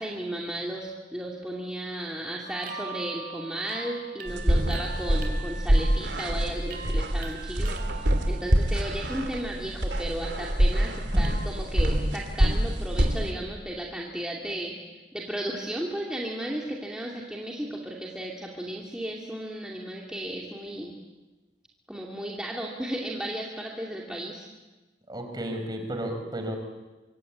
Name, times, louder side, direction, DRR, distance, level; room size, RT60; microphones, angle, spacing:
voice 1, 0.0-14.7 15.1-20.9 21.9-24.5, right 1 dB, 5° right, -2 dB, 2.6 m, -34 dB
sound 1, 2.4-9.3 9.7-10.1 11.2-11.5, right 4 dB, 55° right, 3.8 m, -42 dB
sound 2, 4.3-13.3, equal, 75° right, 3.1 m, -25 dB
voice 2, 25.1-26.6, right 1 dB, 25° right, 5 dB, 4.4 m, -33 dB
25.5 x 25.0 x 8.7 m, 1.2 s
head